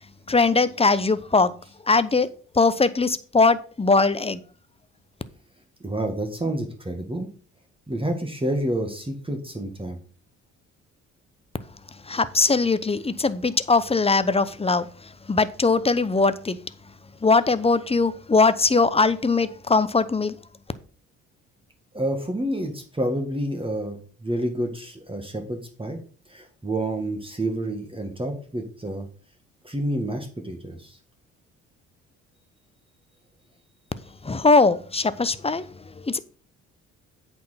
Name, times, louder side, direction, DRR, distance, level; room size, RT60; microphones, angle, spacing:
voice 1, 0.3-1.5 1.9-2.3 2.5-4.4 12.0-16.6 17.2-20.4 34.2-36.2, left 3 dB, 15° left, 0.8 m, -21 dB
voice 2, 5.8-7.3 7.9-10.0 21.9-26.0 26.3-29.1 29.6-31.0, right 1 dB, 15° right, 1.9 m, -29 dB
8.4 x 4.5 x 5.7 m
hypercardioid pair, 45°, 38 cm